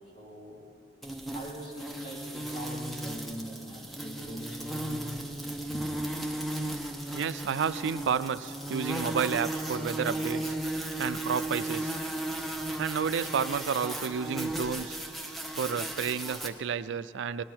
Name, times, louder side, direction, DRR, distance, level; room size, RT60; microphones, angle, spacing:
voice 1, 0.1-0.6 1.3-5.2 5.7-5.9, equal, 45° left, -5 dB, 2.9 m, -41 dB
sound 1, 1.0-16.5, right 1 dB, ahead, 0.7 m, -35 dB
voice 2, 7.1-10.5 11.0-12.0 12.8-15.0 15.6-17.4, right 7 dB, 90° right, 14 dB, 0.4 m, -31 dB
18.0 x 11.0 x 4.5 m, 2.5 s
head